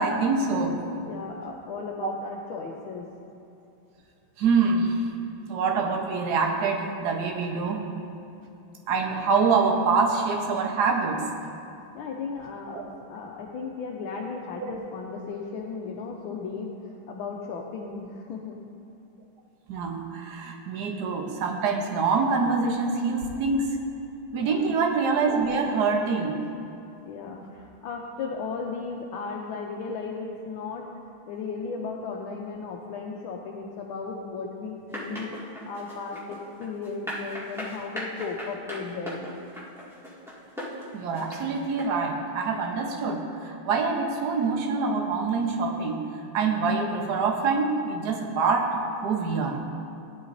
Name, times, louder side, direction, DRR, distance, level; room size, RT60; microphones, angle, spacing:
voice 1, 0.0-0.8 4.4-5.0 5.5-7.8 8.9-11.2 14.6-14.7 19.7-23.7 24.3-26.4 40.9-46.0 46.3-48.7 49.0-49.6, right 4 dB, 55° right, 1 dB, 1.4 m, -25 dB
voice 2, 0.9-3.1 8.5-8.6 11.9-18.6 24.3-24.6 27.0-30.9 31.3-39.3, left 4 dB, 75° left, 0 dB, 1.5 m, -36 dB
sound 1, 34.9-41.8, equal, ahead, 1.8 m, -38 dB
16.0 x 10.5 x 2.6 m, 2.8 s
omnidirectional pair, 2.3 m